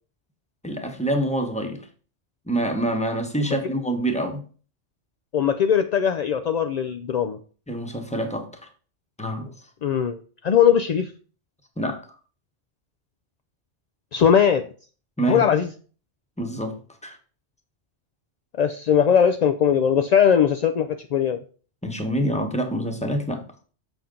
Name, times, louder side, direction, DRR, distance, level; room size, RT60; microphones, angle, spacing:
voice 1, 0.6-1.8 2.5-4.4 7.7-8.5 9.2-9.5 11.8-12.0 15.2-15.5 16.4-16.7 17.0-17.2 21.8-23.4, right 1 dB, 5° left, 4 dB, 1.0 m, -26 dB
voice 2, 5.3-7.4 9.8-11.1 14.1-14.7 15.3-15.7 18.6-21.4, left 8 dB, 60° left, 7 dB, 0.4 m, -20 dB
7.1 x 5.9 x 3.8 m, 0.40 s
omnidirectional pair, 1.2 m